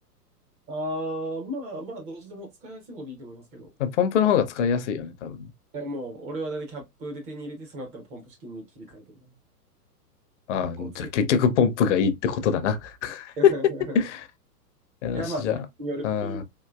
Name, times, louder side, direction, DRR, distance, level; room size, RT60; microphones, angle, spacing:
voice 1, 0.7-3.7 5.7-9.3 10.8-11.1 13.4-14.0 15.1-16.4, right 1 dB, 15° right, 0.4 m, -35 dB
voice 2, 3.8-5.5 10.5-13.3 14.0-14.2 15.0-15.5 16.0-16.4, left 7 dB, 50° left, 0.7 m, -24 dB
3.8 x 2.6 x 2.2 m
figure-of-eight pair, 110°, 48 cm